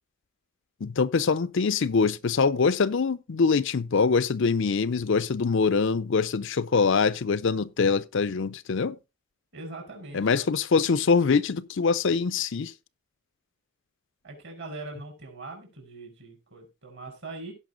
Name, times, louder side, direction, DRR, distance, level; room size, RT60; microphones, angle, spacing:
voice 1, 0.8-9.0 10.1-12.7, left 5 dB, 55° left, 0.5 m, -24 dB
voice 2, 9.5-10.4 14.2-17.5, right 2 dB, 50° right, 5.2 m, -41 dB
16.5 x 5.6 x 3.8 m
head